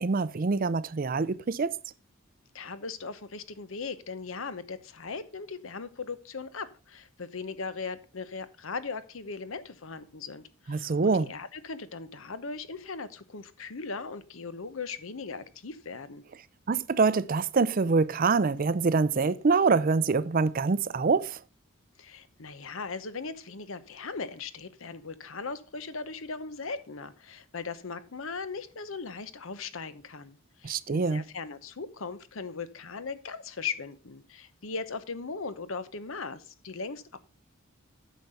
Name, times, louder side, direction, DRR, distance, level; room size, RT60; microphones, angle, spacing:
voice 1, 0.0-1.8 10.7-11.3 16.7-21.4 30.6-31.2, right 4 dB, 40° right, 0.5 m, -25 dB
voice 2, 2.5-16.2 22.0-37.2, left 4 dB, 70° left, 0.9 m, -38 dB
9.2 x 6.6 x 5.6 m
head